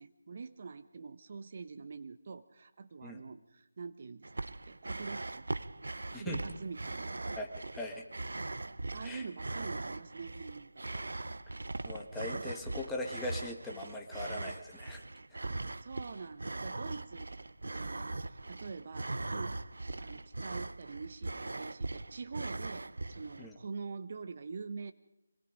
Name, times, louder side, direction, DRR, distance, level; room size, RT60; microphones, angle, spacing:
voice 1, 0.0-4.3 4.7-5.5 6.1-7.1 8.9-10.9 12.2-12.6 15.4-17.3 17.7-19.6 20.0-24.9, right 4 dB, 45° right, 11 dB, 1.0 m, -45 dB
sound 1, 4.2-23.5, right 2 dB, 75° right, 0.8 m, -40 dB
voice 2, 6.1-6.4 7.4-7.5 7.7-8.0 9.0-9.3 10.9-11.1 11.9-15.0 23.4-23.6, left 2 dB, 5° left, 1 dB, 1.7 m, -40 dB
26.0 x 20.0 x 5.1 m, 0.91 s
figure-of-eight pair, 165°, 0 cm